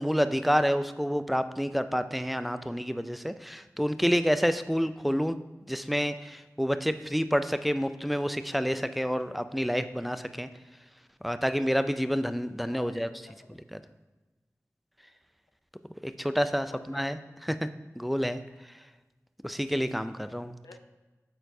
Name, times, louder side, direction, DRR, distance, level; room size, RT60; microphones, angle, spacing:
voice 1, 0.0-5.4 5.7-10.5 11.2-13.1 13.5-13.8 16.0-17.7 18.0-18.4 19.4-20.6, equal, ahead, 11 dB, 0.3 m, -28 dB
voice 2, 12.7-13.6 16.7-17.0 20.6-20.8, left 3 dB, 80° left, 5 dB, 0.6 m, -50 dB
8.7 x 4.3 x 2.7 m, 1.2 s
wide cardioid pair, 45°, 6 cm